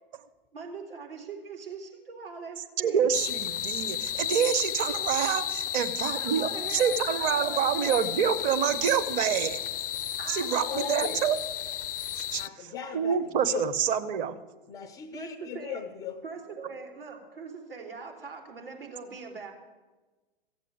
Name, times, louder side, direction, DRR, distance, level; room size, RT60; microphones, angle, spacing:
voice 1, 0.5-3.1 6.0-8.1 10.2-11.3 15.1-15.8 16.2-19.5, right 5 dB, 75° right, 1 dB, 3.6 m, -42 dB
voice 2, 2.8-9.6 10.3-11.4 12.1-14.4, right 8 dB, 25° right, 9 dB, 0.8 m, -27 dB
sound 1, 3.1-12.5, left 11 dB, 70° left, 0.5 m, -33 dB
voice 3, 10.6-11.2 12.4-13.6 14.7-16.2, left 9 dB, 15° left, 8 dB, 0.4 m, -38 dB
15.0 x 7.6 x 8.6 m, 1.2 s
figure-of-eight pair, 115°, 29 cm